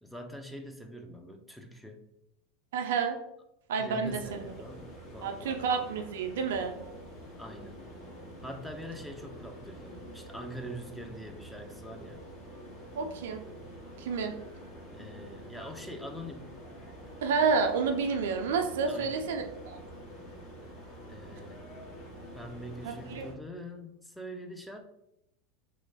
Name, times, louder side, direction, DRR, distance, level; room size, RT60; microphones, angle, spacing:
voice 1, 0.0-2.0 3.8-5.6 7.4-7.8 8.4-12.2 15.0-16.6 18.9-19.2 21.1-21.6 22.3-24.8, equal, ahead, 4 dB, 0.5 m, -44 dB
voice 2, 2.7-3.2 3.7-4.4 5.2-6.7 12.9-13.4 14.0-14.4 17.2-19.8 22.8-23.3, right 5 dB, 70° right, 5 dB, 0.4 m, -30 dB
sound 1, 4.0-23.3, equal, 50° left, 1.1 m, -47 dB
3.0 x 2.0 x 3.9 m, 0.81 s
hypercardioid pair, 85°, 0 cm